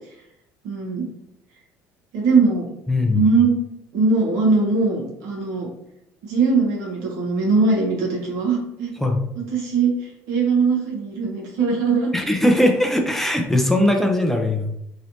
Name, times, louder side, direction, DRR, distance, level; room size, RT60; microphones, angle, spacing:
voice 1, 0.6-1.1 2.1-2.7 3.1-3.5 3.9-5.7 6.2-8.9 9.5-12.1, right 4 dB, 75° right, -2 dB, 1.0 m, -20 dB
voice 2, 2.9-3.2 9.0-9.2 12.1-14.7, left 1 dB, 5° left, 3 dB, 0.4 m, -19 dB
3.1 x 2.9 x 2.7 m, 0.79 s
supercardioid pair, 95°, 6 cm